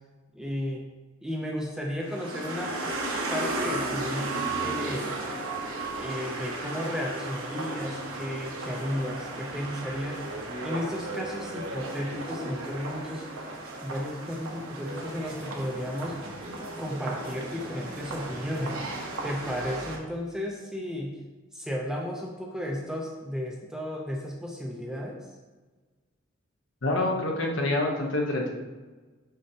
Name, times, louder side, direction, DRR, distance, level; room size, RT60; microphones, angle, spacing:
voice 1, 0.3-0.8 1.2-3.0 3.3-5.1 5.9-10.2 10.6-13.3 13.8-16.2 16.8-18.8 19.2-21.2 21.5-25.3, equal, 5° right, -1 dB, 0.5 m, -34 dB
sound 1, 2.0-20.0, right 2 dB, 80° right, 1.1 m, -35 dB
voice 2, 26.8-28.5, left 2 dB, 65° left, 0 dB, 1.1 m, -26 dB
6.4 x 5.5 x 2.8 m, 1.3 s
head